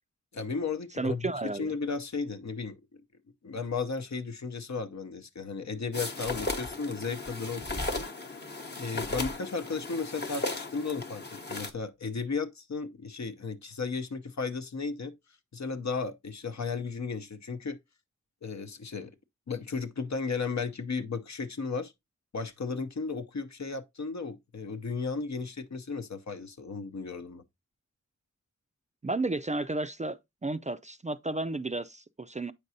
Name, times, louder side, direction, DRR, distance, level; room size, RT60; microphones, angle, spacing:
voice 1, 0.3-1.3 1.6-3.0 3.4-8.1 8.3-8.5 8.8-11.2 11.5-15.1 15.5-17.8 18.4-19.1 19.5-21.9 22.3-27.4, left 4 dB, 65° left, 0.7 m, -34 dB
voice 2, 1.0-1.7 29.0-32.5, right 2 dB, 25° right, 0.4 m, -32 dB
sound 1, 5.9-11.7, left 2 dB, 35° left, 0.9 m, -36 dB
8.2 x 5.3 x 2.7 m
wide cardioid pair, 50°, 30 cm